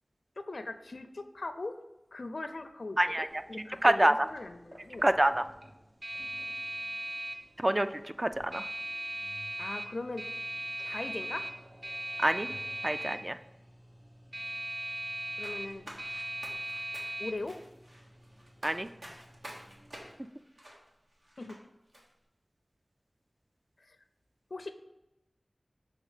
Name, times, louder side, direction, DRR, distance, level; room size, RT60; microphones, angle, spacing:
voice 1, 0.4-1.8 2.1-5.1 9.6-10.3 10.8-11.5 15.4-15.9 17.2-17.6 21.4-21.6 23.9-24.0 24.5-24.7, left 2 dB, 75° left, 9 dB, 0.4 m, -40 dB
voice 2, 3.0-4.1 5.0-5.4 7.6-8.7 12.2-12.5 12.8-13.4 18.6-18.9, right 1 dB, 30° right, 10 dB, 0.3 m, -27 dB
sound 1, 3.3-20.1, right 1 dB, 60° right, 1.0 m, -40 dB
sound 2, 15.4-21.6 21.9-22.0, equal, 75° right, 1.5 m, -50 dB
6.3 x 3.7 x 4.9 m, 0.95 s
wide cardioid pair, 55°, 0 cm